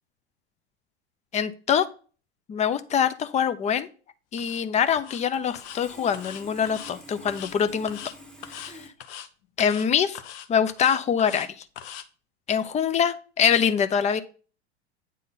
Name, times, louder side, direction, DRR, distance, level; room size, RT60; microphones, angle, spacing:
voice 1, 1.3-1.9 2.5-3.9 4.3-8.0 8.5-8.8 9.6-10.2 10.5-11.5 12.5-14.2, left 8 dB, 20° left, 12 dB, 0.5 m, -24 dB
sound 1, 4.4-4.6 4.9-5.2 5.5-5.8 6.1-6.9 7.3-7.5 7.8-8.1 8.4-8.7 9.0-9.3 9.6-9.9 10.1-11.5 11.8-12.0, left 10 dB, 55° left, 0.7 m, -41 dB
Sawing, 4.9-5.0 5.3-8.9, equal, ahead, 1.1 m, -47 dB
8.6 x 3.8 x 4.0 m, 0.39 s
figure-of-eight pair, 85°, 34 cm